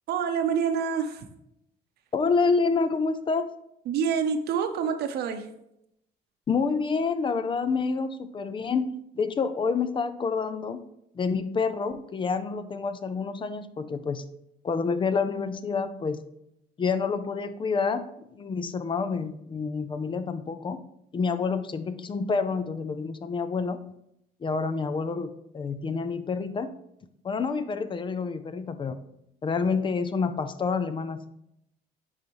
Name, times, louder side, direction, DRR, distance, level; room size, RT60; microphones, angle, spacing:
voice 1, 0.1-1.2 3.9-5.5, right 7 dB, 70° right, 8 dB, 0.8 m, -27 dB
voice 2, 2.1-3.5 6.5-8.9 9.1-10.8 11.1-14.2 14.6-16.2 16.8-20.8 21.1-23.8 24.4-26.7 27.2-29.0 29.4-31.3, left 5 dB, 30° left, 11 dB, 0.5 m, -28 dB
9.5 x 4.1 x 3.1 m, 0.79 s
cardioid pair, 110°, 17 cm